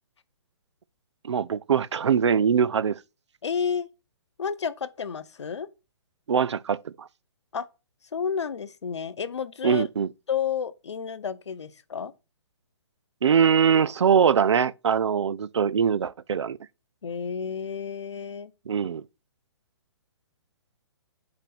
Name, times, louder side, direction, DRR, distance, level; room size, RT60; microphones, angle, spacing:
voice 1, 1.2-3.0 6.3-7.1 9.6-10.1 13.2-16.6 18.7-19.0, right 7 dB, 85° right, 0.5 m, -22 dB
voice 2, 3.4-3.9 4.4-5.7 7.5-7.6 8.1-9.9 10.3-12.1 17.0-18.5, left 7 dB, 80° left, 0.8 m, -31 dB
5.8 x 4.4 x 6.0 m
hypercardioid pair, 150°, 14 cm